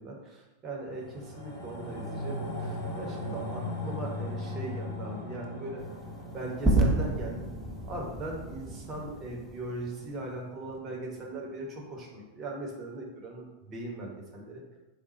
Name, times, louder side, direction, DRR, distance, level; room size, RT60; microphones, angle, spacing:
voice 1, 0.0-5.8 6.3-7.4 7.8-14.6, right 2 dB, 25° right, -1 dB, 0.9 m, -39 dB
sound 1, 0.9-11.5 11.8-11.9, left 1 dB, 55° left, 1.3 m, -39 dB
sound 2, 5.8-10.1, right 2 dB, 5° right, 0.6 m, -30 dB
3.6 x 2.2 x 4.1 m, 1.0 s
figure-of-eight pair, 90°, 0 cm